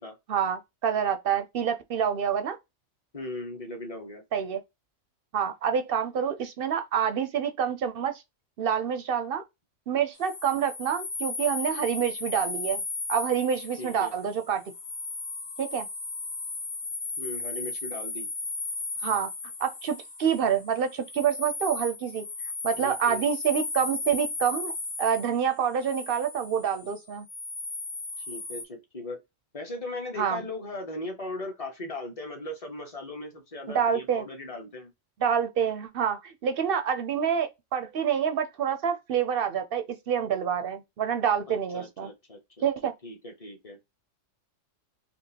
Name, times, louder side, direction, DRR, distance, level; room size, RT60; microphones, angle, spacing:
voice 1, 0.3-2.6 4.3-4.6 5.3-8.1 8.6-9.4 9.9-12.8 13.1-14.6 15.6-15.9 19.0-19.3 19.6-22.2 22.6-24.7 25.0-27.3 30.2-30.4 33.7-34.2 35.2-42.1 42.6-42.9, right 8 dB, 60° right, 0.7 m, -27 dB
voice 2, 3.1-4.2 13.8-14.1 17.2-18.3 22.8-23.2 28.2-29.2 29.5-34.9 41.5-42.4 42.8-43.8, left 2 dB, 30° left, 1.1 m, -38 dB
sound 1, 10.2-28.6, left 3 dB, 65° left, 1.1 m, -36 dB
4.4 x 2.4 x 2.8 m
omnidirectional pair, 1.3 m